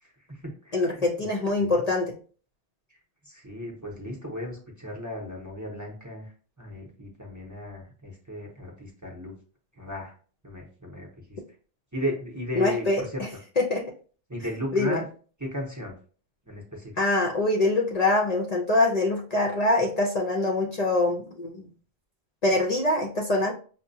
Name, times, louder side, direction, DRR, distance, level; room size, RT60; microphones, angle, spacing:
voice 1, 0.0-1.0 1.6-1.7 2.9-3.0 3.2-6.3 6.6-9.3 9.8-10.1 10.4-11.4 11.9-13.2 14.3-15.1 15.4-15.9 16.5-16.9, left 1 dB, 20° right, -2 dB, 0.7 m, -35 dB
voice 2, 0.7-2.2 12.6-13.3 13.6-13.8 14.7-15.0 17.0-21.6 22.4-23.5, left 2 dB, 50° left, 0 dB, 0.6 m, -24 dB
5.6 x 2.1 x 2.6 m, 0.40 s
omnidirectional pair, 1.0 m